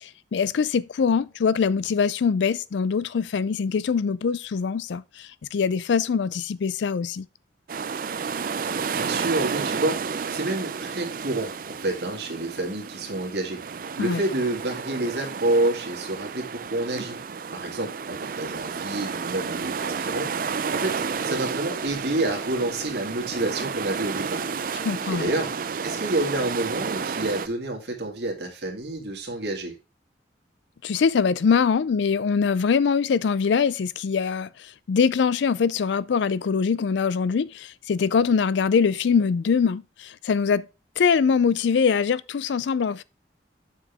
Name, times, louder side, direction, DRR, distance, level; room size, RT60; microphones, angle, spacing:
voice 1, 0.0-7.3 14.0-14.2 24.8-25.3 30.8-40.7 41.0-43.0, left 6 dB, 70° left, 0.4 m, -23 dB
sound 1, 7.7-27.5, right 5 dB, 50° right, 0.4 m, -31 dB
voice 2, 8.7-13.6 14.0-17.2 17.5-24.5 25.1-25.5 25.8-29.7, right 2 dB, 65° right, 2.1 m, -29 dB
7.2 x 6.1 x 3.5 m
head